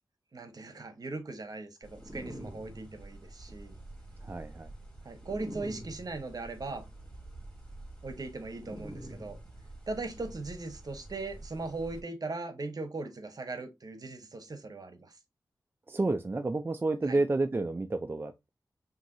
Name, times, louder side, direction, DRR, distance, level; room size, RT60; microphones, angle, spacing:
voice 1, 0.3-3.8 5.0-6.8 8.0-9.4 9.9-15.1 17.0-17.2, right 3 dB, 60° right, 1.1 m, -39 dB
sound 1, 1.8-12.0, right 1 dB, 10° left, 2.6 m, -46 dB
voice 2, 4.2-4.7 15.9-18.5, right 2 dB, 30° right, 0.4 m, -30 dB
5.8 x 2.7 x 2.6 m
cardioid pair, 55°, 7 cm